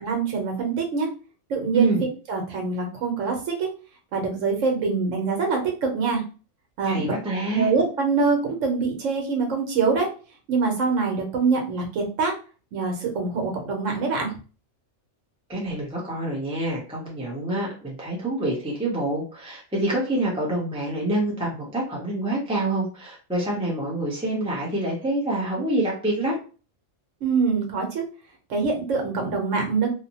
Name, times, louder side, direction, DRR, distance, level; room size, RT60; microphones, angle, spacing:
voice 1, 0.0-1.1 1.5-1.9 2.3-3.7 4.1-6.2 6.8-7.1 7.5-10.1 10.5-12.3 12.7-14.3 27.2-28.0 28.5-29.9, right 4 dB, 75° right, 2 dB, 1.2 m, -24 dB
voice 2, 6.8-7.7 15.5-26.4, right 2 dB, 5° right, -4 dB, 0.6 m, -26 dB
2.7 x 2.1 x 2.8 m, 0.36 s
omnidirectional pair, 1.3 m